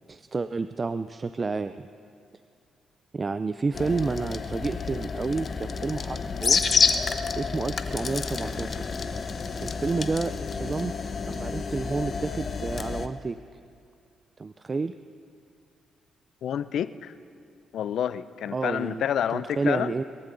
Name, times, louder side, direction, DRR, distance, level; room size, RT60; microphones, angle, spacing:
voice 1, 0.1-1.9 3.1-6.6 7.4-8.8 9.6-10.9 11.3-13.4 14.4-14.9 18.5-19.0 19.3-20.0, right 4 dB, 30° right, 11 dB, 0.4 m, -30 dB
sound 1, 3.7-13.1, left 5 dB, 45° left, 0.9 m, -29 dB
voice 2, 16.4-17.1 17.7-19.9, left 9 dB, 70° left, 14 dB, 0.5 m, -28 dB
21.5 x 14.0 x 3.9 m, 2.4 s
cardioid pair, 95°, 0 cm